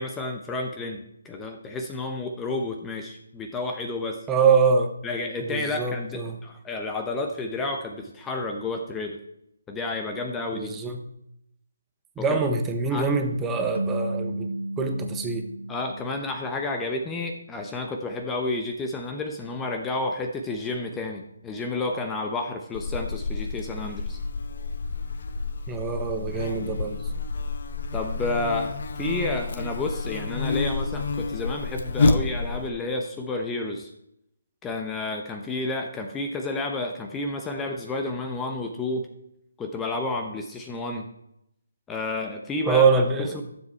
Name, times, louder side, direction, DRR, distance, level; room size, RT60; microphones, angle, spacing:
voice 1, 0.0-4.3 5.0-9.2 9.7-10.7 12.2-12.4 12.9-13.1 15.7-24.2 27.9-33.9 34.6-39.1 39.6-41.1 41.9-42.8, left 2 dB, 10° left, 4 dB, 0.8 m, -31 dB
voice 2, 4.3-4.9 5.4-6.4 10.5-11.0 12.2-15.5 25.7-27.0 42.7-43.4, right 5 dB, 10° right, 5 dB, 1.0 m, -24 dB
sound 1, 13.7-16.9, right 1 dB, 65° right, 1.0 m, -33 dB
Buzz, 22.7-32.7, left 3 dB, 55° left, 0.9 m, -29 dB
12.0 x 7.5 x 4.6 m, 0.79 s
figure-of-eight pair, 150°, 0 cm